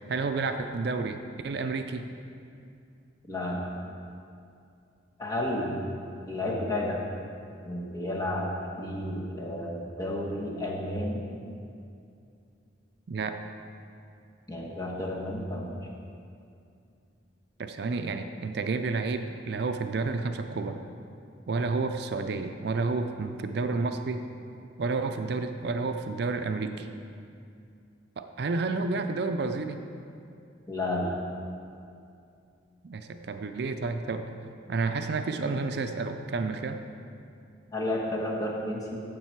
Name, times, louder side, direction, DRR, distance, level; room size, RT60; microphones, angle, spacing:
voice 1, 0.1-2.1 13.1-13.4 17.6-20.8 21.5-24.2 24.8-26.9 28.2-29.8 32.8-34.3 34.7-36.8, right 3 dB, 55° right, 7 dB, 0.4 m, -30 dB
voice 2, 3.3-3.7 5.2-5.8 6.3-7.0 7.6-8.5 8.8-11.2 14.5-15.8 30.7-31.1 37.7-39.0, left 1 dB, 20° left, -3 dB, 1.3 m, -31 dB
9.9 x 7.4 x 4.6 m, 2.5 s
head